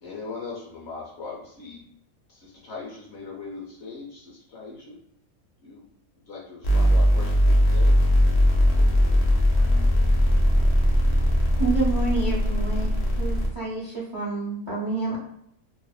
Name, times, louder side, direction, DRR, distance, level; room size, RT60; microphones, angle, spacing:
voice 1, 0.0-1.8 2.3-5.0 5.6-5.8 6.2-8.0, left 4 dB, 60° left, -3 dB, 0.8 m, -39 dB
sound 1, 6.6-13.5, equal, 80° left, 0.3 m, -20 dB
voice 2, 8.7-10.8, right 2 dB, 70° right, -1 dB, 0.9 m, -49 dB
voice 3, 11.6-12.9 13.2-15.2, right 3 dB, 55° right, -6 dB, 0.3 m, -28 dB
2.6 x 2.1 x 2.3 m, 0.73 s
omnidirectional pair, 1.6 m